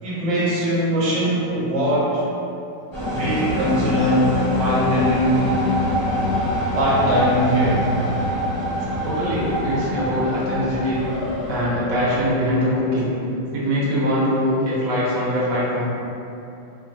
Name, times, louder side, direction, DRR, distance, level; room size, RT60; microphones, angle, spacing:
voice 1, 0.0-2.2 3.1-5.5 6.7-7.9, equal, 75° right, -7 dB, 1.4 m, -21 dB
sound 1, 2.9-12.5, equal, 15° left, 1.0 m, -25 dB
voice 2, 9.0-11.0 11.5-13.1 13.5-15.9, equal, 60° right, -8 dB, 1.0 m, -22 dB
3.1 x 2.5 x 2.5 m, 2.8 s
omnidirectional pair, 2.1 m